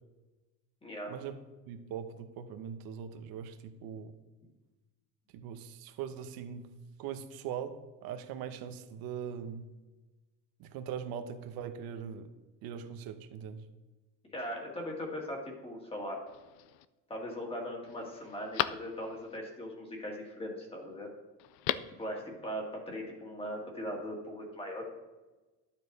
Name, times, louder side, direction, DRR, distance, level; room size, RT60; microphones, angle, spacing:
voice 1, 0.8-1.2 14.3-16.2 17.1-21.1 22.0-24.9, equal, 15° left, 0 dB, 1.9 m, -39 dB
voice 2, 1.7-4.1 5.3-6.7 7.0-9.6 10.6-12.3 12.6-13.6, right 8 dB, 65° right, 9 dB, 1.0 m, -41 dB
Telephone, 16.3-16.9 17.4-17.5 17.9-19.4 21.4-22.0 22.3-22.4, left 14 dB, 75° left, 0.5 m, -36 dB
12.0 x 7.4 x 4.1 m, 1.2 s
cardioid pair, 165°, 38 cm